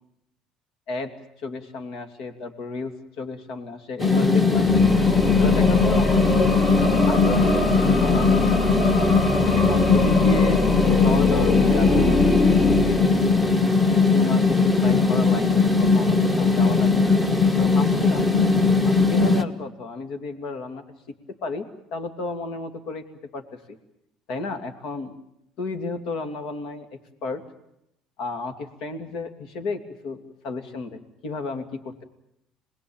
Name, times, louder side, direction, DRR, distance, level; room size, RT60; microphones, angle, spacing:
voice 1, 1.4-4.7 5.4-8.8 9.5-10.7 11.0-17.0 17.6-18.3 18.8-20.8 21.4-23.0 23.3-23.8 24.3-25.2 25.6-27.4 28.2-32.0, left 3 dB, 65° left, 7 dB, 2.9 m, -33 dB
sound 1, 4.0-19.4, left 4 dB, 15° left, 1.5 m, -19 dB
sound 2, 4.5-13.6, left 2 dB, 45° left, 4.1 m, -24 dB
27.0 x 20.0 x 8.9 m, 0.81 s
cardioid pair, 145°, 0 cm